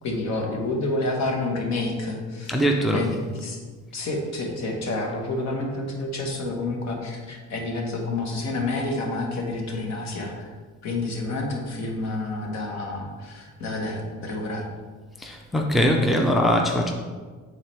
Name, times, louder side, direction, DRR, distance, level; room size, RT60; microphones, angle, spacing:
voice 1, 0.0-2.5 2.9-3.6 3.9-10.5 10.8-14.7, left 2 dB, 60° left, 1 dB, 1.4 m, -29 dB
voice 2, 2.5-3.1 15.2-16.9, equal, ahead, 2 dB, 0.5 m, -21 dB
10.5 x 3.9 x 3.4 m, 1.5 s
cardioid pair, 130°, 30 cm